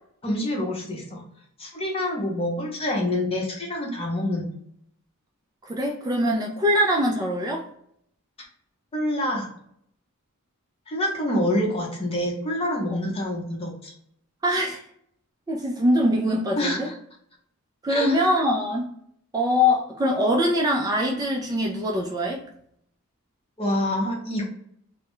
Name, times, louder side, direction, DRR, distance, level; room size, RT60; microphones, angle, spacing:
voice 1, 0.2-1.3 1.6-4.5 8.9-9.5 10.9-13.9 16.6-17.0 17.9-18.2 23.6-24.4, left 1 dB, 25° left, -1 dB, 0.7 m, -26 dB
voice 2, 5.6-7.6 12.9-13.0 14.4-14.8 15.5-16.9 17.8-18.9 19.3-22.4, equal, 15° right, -1 dB, 0.3 m, -23 dB
2.2 x 2.0 x 2.9 m, 0.69 s
head